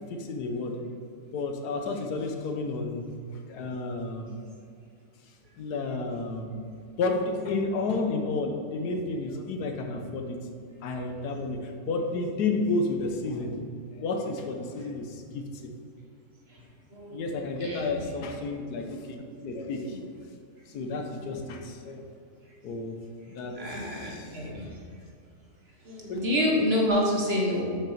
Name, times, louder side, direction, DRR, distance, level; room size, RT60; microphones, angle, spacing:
voice 1, 0.1-0.8 1.3-3.1 3.5-4.4 5.6-6.6 7.0-10.4 10.8-13.6 13.9-15.7 17.1-20.0 20.7-22.1 22.6-23.0 23.3-24.4 26.1-26.2, left 3 dB, 85° left, 4 dB, 1.4 m, -31 dB
voice 2, 17.6-18.0 19.9-20.0 23.5-24.8 25.8-27.6, left 1 dB, 40° right, -2 dB, 1.5 m, -28 dB
6.5 x 6.0 x 5.0 m, 2.4 s
omnidirectional pair, 1.7 m